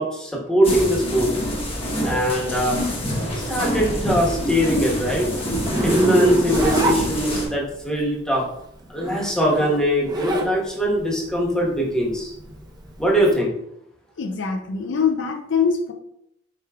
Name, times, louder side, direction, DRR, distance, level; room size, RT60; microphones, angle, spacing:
voice 1, 0.0-1.3 2.0-2.8 3.5-5.3 5.8-8.4 8.9-12.3 13.0-13.5, equal, 5° left, -3 dB, 1.1 m, -21 dB
sound 1, 0.6-7.5, equal, 30° left, 1.0 m, -26 dB
Zipper (clothing), 5.7-7.7 8.9-10.5 10.9-13.3, right 2 dB, 20° right, 0.7 m, -24 dB
voice 2, 14.2-15.9, left 6 dB, 75° left, 5 dB, 0.5 m, -23 dB
4.9 x 4.6 x 2.3 m, 0.76 s
head